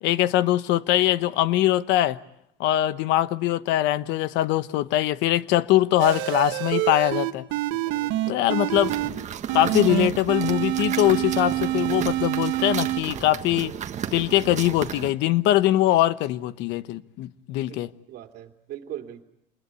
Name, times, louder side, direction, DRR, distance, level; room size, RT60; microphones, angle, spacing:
voice 1, 0.0-2.2 2.6-7.4 8.3-8.9 9.5-13.7 14.1-17.9, left 14 dB, 75° left, 1.0 m, -22 dB
sound 1, 6.0-9.1 9.5-13.0, right 15 dB, 85° right, 1.5 m, -26 dB
voice 2, 7.7-8.5 18.1-19.2, right 11 dB, 55° right, 2.8 m, -40 dB
sound 2, 8.7-15.1, right 9 dB, 40° right, 1.5 m, -34 dB
27.5 x 21.0 x 8.2 m
cardioid pair, 135°, 19 cm